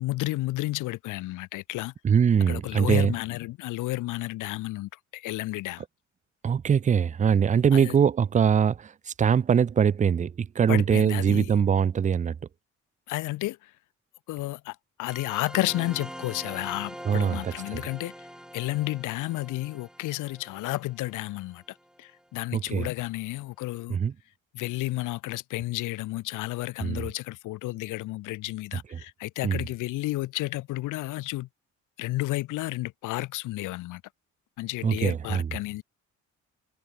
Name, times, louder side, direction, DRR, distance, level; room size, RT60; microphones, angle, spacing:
voice 1, 0.0-1.9 2.5-5.8 7.7-8.0 10.7-11.5 13.1-13.7 14.3-18.3 18.5-24.0 24.5-31.5 32.0-34.0 34.6-35.8, left 18 dB, 85° left, 0.7 m, -32 dB
voice 2, 2.0-3.1 6.4-12.4 17.1-17.8 22.5-22.9 23.9-24.1 26.8-27.1 28.9-29.0 29.4-29.6 34.8-35.5, right 7 dB, 25° right, 0.4 m, -23 dB
sound 1, 15.1-22.2, equal, ahead, 2.8 m, -44 dB
cardioid pair, 90°, 30 cm